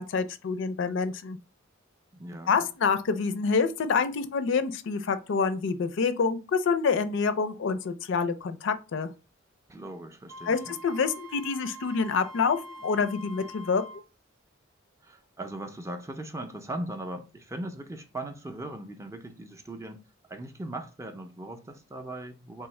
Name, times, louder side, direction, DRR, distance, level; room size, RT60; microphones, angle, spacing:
voice 1, 0.0-1.4 2.5-9.1 10.5-13.8, left 5 dB, 65° left, 0.4 m, -27 dB
voice 2, 2.1-2.7 9.7-10.8 15.0-20.0 20.3-22.7, right 1 dB, 15° right, 0.4 m, -39 dB
Wind instrument woodwind instrument, 10.3-14.0, equal, 85° right, 0.6 m, -45 dB
3.6 x 2.7 x 3.1 m
head